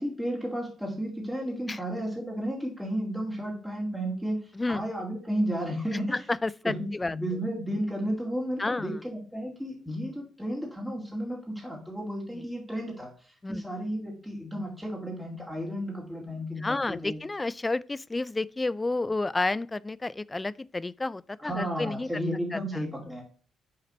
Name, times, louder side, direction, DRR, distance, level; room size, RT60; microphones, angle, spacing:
voice 1, 0.0-6.2 6.6-17.2 21.4-23.2, equal, ahead, 2.2 m, -33 dB
voice 2, 6.1-7.2 8.6-8.9 12.3-12.4 13.4-13.6 16.6-22.1, left 2 dB, 20° left, 0.3 m, -30 dB
6.6 x 4.0 x 4.1 m
cardioid pair, 90°, 0 cm